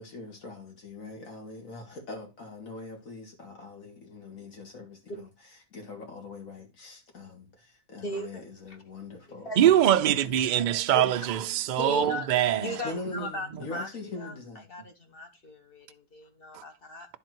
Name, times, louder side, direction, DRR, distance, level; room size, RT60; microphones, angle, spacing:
voice 1, 0.0-9.5 10.0-10.2 12.8-14.6, left 3 dB, 70° left, 2.5 m, -42 dB
voice 2, 8.0-8.4 9.4-9.6 10.9-11.0 11.7-14.4 14.7-17.1, left 1 dB, 40° left, 1.3 m, -38 dB
voice 3, 9.6-12.7, right 11 dB, 90° right, 0.4 m, -23 dB
10.5 x 3.9 x 4.5 m
omnidirectional pair, 1.5 m